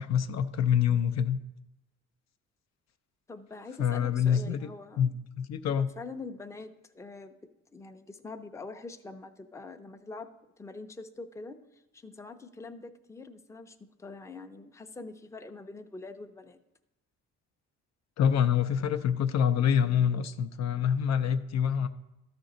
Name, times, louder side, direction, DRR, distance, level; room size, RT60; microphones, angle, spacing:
voice 1, 0.0-1.4 3.8-4.7 5.0-5.9 18.2-21.9, left 8 dB, 60° left, 9 dB, 0.5 m, -26 dB
voice 2, 3.3-5.1 5.7-7.4 7.7-10.3 10.6-16.6, left 3 dB, 10° left, 6 dB, 0.5 m, -44 dB
13.0 x 5.2 x 3.9 m, 0.90 s
cardioid pair, 90°, 30 cm